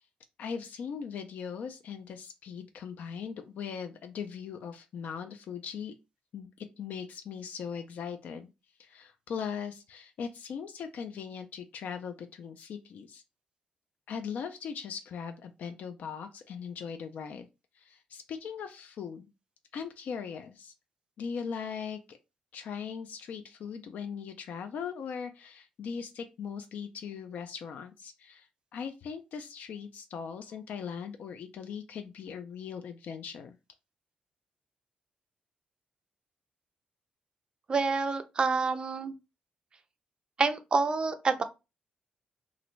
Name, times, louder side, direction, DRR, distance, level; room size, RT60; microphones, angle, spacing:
voice 1, 0.4-5.9 6.3-8.5 8.8-13.2 14.1-17.5 17.8-19.3 19.7-20.7 21.2-22.2 22.5-33.5, left 6 dB, 65° left, 0.4 m, -39 dB
voice 2, 37.7-39.1 40.4-41.4, right 4 dB, 30° right, 0.4 m, -27 dB
3.0 x 2.5 x 3.0 m
cardioid pair, 145°, 3 cm